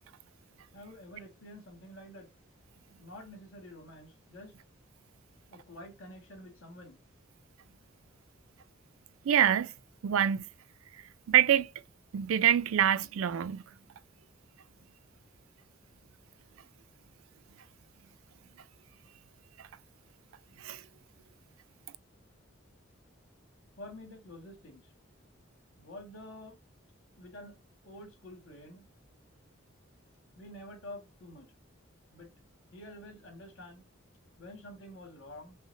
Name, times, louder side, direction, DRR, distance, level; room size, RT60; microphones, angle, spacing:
voice 1, 0.7-2.3 3.0-4.5 5.5-7.0 23.8-24.9 25.8-26.6 27.2-27.6 27.8-28.9 30.4-31.5 32.1-32.3 32.7-33.9 34.4-35.6, left 1 dB, 75° left, 2.0 m, -48 dB
voice 2, 9.3-9.7 10.0-10.4 11.3-11.7 12.1-13.6 20.6-20.8, right 10 dB, 85° right, 0.4 m, -25 dB
5.6 x 2.1 x 2.7 m
head